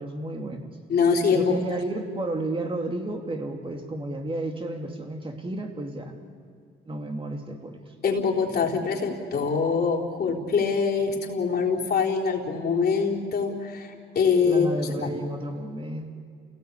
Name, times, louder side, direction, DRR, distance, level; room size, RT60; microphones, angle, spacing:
voice 1, 0.0-0.7 1.3-6.2 6.9-7.8 14.4-16.1, right 1 dB, 25° right, 3 dB, 2.7 m, -32 dB
voice 2, 0.9-1.6 8.0-14.7 15.0-15.1, left 5 dB, 50° left, -2 dB, 3.9 m, -24 dB
29.0 x 18.0 x 8.5 m, 2.2 s
cardioid pair, 90°, 20 cm